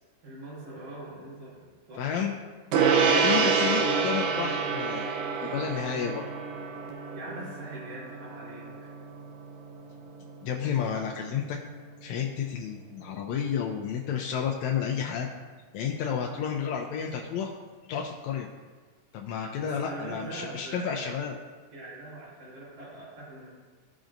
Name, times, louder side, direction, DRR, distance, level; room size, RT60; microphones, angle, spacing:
voice 1, 0.2-2.0 7.1-8.6 19.6-21.3 21.7-23.5, right 1 dB, 60° right, -13 dB, 4.0 m, -42 dB
voice 2, 2.0-2.3 3.1-6.2 10.4-11.6 12.0-15.3 15.7-17.5 17.9-18.5 19.1-21.3, left 7 dB, 80° left, 1 dB, 1.7 m, -31 dB
Gong, 2.7-12.4, right 5 dB, 85° right, 2.4 m, -28 dB
15.5 x 6.1 x 2.6 m, 1.4 s
omnidirectional pair, 3.8 m